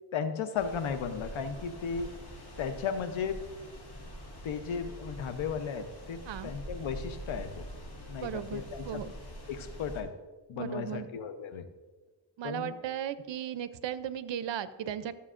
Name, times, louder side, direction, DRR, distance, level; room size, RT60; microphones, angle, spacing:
voice 1, 0.1-2.1 2.6-3.5 4.4-7.7 8.1-9.0 9.5-10.1 10.5-11.6 12.4-12.7, left 6 dB, 85° left, 9 dB, 0.8 m, -35 dB
sound 1, 0.5-10.0, equal, 55° left, 2.1 m, -45 dB
voice 2, 8.2-9.1 10.5-11.1 12.4-15.2, right 9 dB, 70° right, 14 dB, 0.6 m, -36 dB
13.5 x 7.1 x 2.5 m, 1.3 s
cardioid pair, 80°, 46 cm